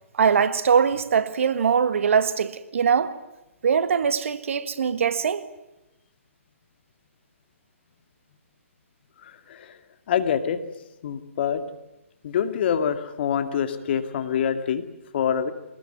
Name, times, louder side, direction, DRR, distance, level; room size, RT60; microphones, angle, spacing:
voice 1, 0.2-3.2 3.6-5.5, right 6 dB, 65° right, 1.7 m, -22 dB
voice 2, 9.2-9.8 10.1-10.6 11.0-11.6 12.2-14.8 15.1-15.5, left 8 dB, 50° left, 2.3 m, -25 dB
23.5 x 20.0 x 9.3 m
hypercardioid pair, 145°, 8 cm